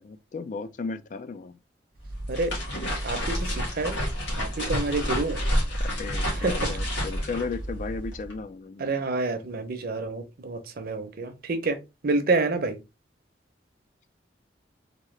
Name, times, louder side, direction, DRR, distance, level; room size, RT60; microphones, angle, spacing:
voice 1, 0.0-1.6 5.8-8.8, left 4 dB, 45° left, 0.3 m, -35 dB
sound 1, 2.0-8.3, equal, 80° left, 1.8 m, -29 dB
voice 2, 3.0-5.4 6.4-6.8 8.8-11.8 12.0-12.8, right 3 dB, 55° right, 0.7 m, -28 dB
3.7 x 2.7 x 3.1 m
head